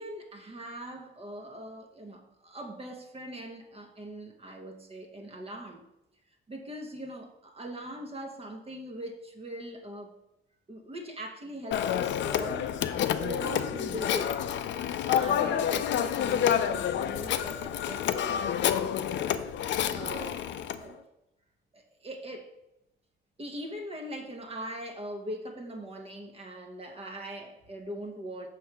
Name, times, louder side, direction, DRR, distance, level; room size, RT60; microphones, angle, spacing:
voice 1, 0.0-5.8 6.5-10.1 10.7-12.7 13.2-14.4 15.1-18.5 19.9-20.5 20.8-21.0 21.7-22.5 23.4-28.5, right 1 dB, 30° right, 3 dB, 1.0 m, -41 dB
Telephone, 11.7-20.8, left 9 dB, 65° left, 0.4 m, -28 dB
5.5 x 3.3 x 5.7 m, 0.90 s
cardioid pair, 90°, 20 cm